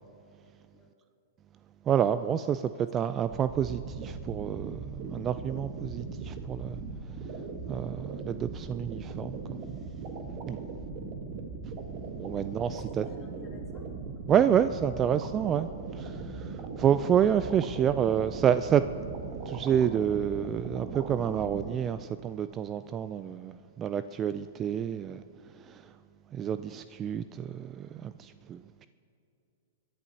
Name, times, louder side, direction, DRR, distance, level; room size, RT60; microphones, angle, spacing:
voice 1, 1.9-6.8 7.7-9.6 10.5-10.6 12.2-13.1 14.3-15.7 16.0-18.8 19.5-25.2 25.5-25.9 26.3-28.9, right 9 dB, 25° right, 13 dB, 0.3 m, -28 dB
sound 1, 3.3-21.8, right 4 dB, 40° right, 1.3 m, -39 dB
voice 2, 8.1-8.7 10.2-10.4 12.5-13.9 14.3-14.4, left 4 dB, 25° left, -1 dB, 2.7 m, -56 dB
24.5 x 11.0 x 2.8 m, 2.7 s
figure-of-eight pair, 105°, 0 cm